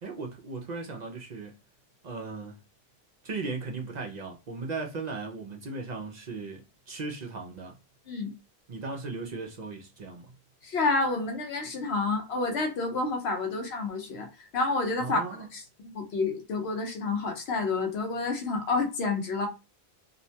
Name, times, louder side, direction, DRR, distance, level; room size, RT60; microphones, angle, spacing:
voice 1, 0.0-1.5 2.0-2.6 3.2-6.6 6.9-7.7 8.7-10.3 15.0-15.5, right 3 dB, 55° right, 0.5 m, -37 dB
voice 2, 10.6-14.3 14.5-15.6 15.9-19.5, left 3 dB, 90° left, 1.0 m, -29 dB
2.6 x 2.1 x 2.7 m
omnidirectional pair, 1.1 m